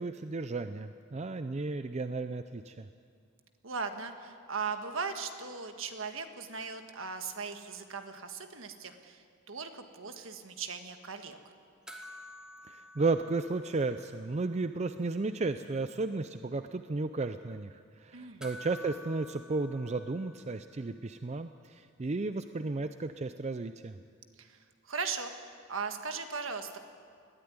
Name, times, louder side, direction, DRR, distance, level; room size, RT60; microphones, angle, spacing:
voice 1, 0.0-2.9 12.7-24.0, right 3 dB, 30° right, 10 dB, 0.5 m, -34 dB
voice 2, 3.6-11.4 18.1-18.5 24.4-24.6 24.8-26.8, right 5 dB, 65° right, 7 dB, 1.6 m, -38 dB
sound 1, 11.9-14.5 14.8-14.9 18.4-21.0 23.2-23.3, left 1 dB, 5° right, 1.8 m, -50 dB
20.5 x 14.0 x 9.6 m, 2.3 s
head